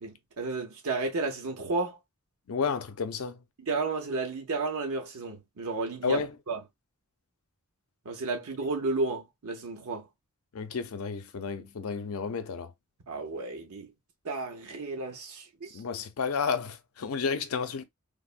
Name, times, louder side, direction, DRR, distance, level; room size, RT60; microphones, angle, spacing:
voice 1, 0.0-2.0 3.6-6.6 8.1-10.1 13.1-13.9 14.2-15.8, right 3 dB, 85° right, 0.8 m, -32 dB
voice 2, 2.5-3.4 6.0-6.3 10.5-12.7 15.7-17.8, left 5 dB, 80° left, 0.5 m, -31 dB
3.4 x 2.1 x 2.4 m
head